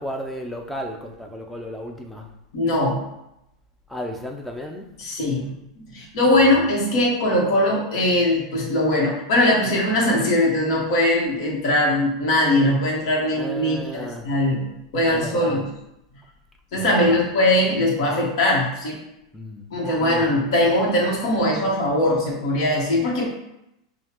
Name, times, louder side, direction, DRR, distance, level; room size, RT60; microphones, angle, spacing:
voice 1, 0.0-2.3 3.9-4.9 6.3-6.7 13.4-14.3 15.1-15.6 16.8-17.3 19.3-19.7 20.0-20.3, equal, 5° left, 2 dB, 0.5 m, -34 dB
voice 2, 2.5-3.0 5.0-15.6 16.7-19.0 19.7-23.2, left 1 dB, 65° left, -3 dB, 1.3 m, -21 dB
5.4 x 2.3 x 3.0 m, 0.85 s
supercardioid pair, 130°, 3 cm